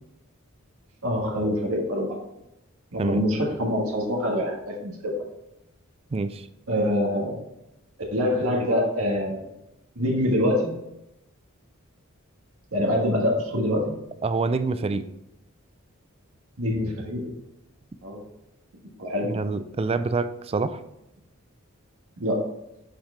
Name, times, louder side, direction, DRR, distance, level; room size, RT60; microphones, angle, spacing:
voice 1, 1.0-2.2 2.9-5.1 6.7-7.4 8.1-9.4 9.9-10.7 12.7-13.8 16.6-17.3 18.0-18.2 19.0-19.3 22.2-22.4, equal, 85° right, -1 dB, 1.5 m, -25 dB
voice 2, 6.1-6.5 14.2-15.1 19.2-20.8, right 3 dB, 30° right, 11 dB, 0.4 m, -26 dB
7.4 x 4.6 x 3.7 m, 0.88 s
head